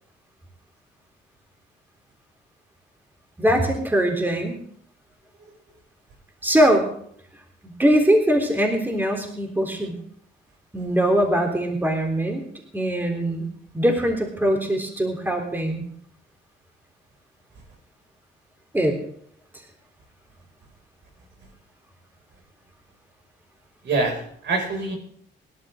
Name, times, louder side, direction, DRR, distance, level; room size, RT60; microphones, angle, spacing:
voice 1, 3.4-4.6 6.4-6.9 7.6-10.0 10.7-12.4 12.7-13.5 13.7-15.8 18.7-19.0, right 1 dB, 10° right, 2 dB, 3.6 m, -21 dB
voice 2, 23.8-25.0, right 3 dB, 65° right, 2 dB, 6.2 m, -25 dB
25.5 x 12.0 x 3.8 m, 0.64 s
cardioid pair, 90°, 20 cm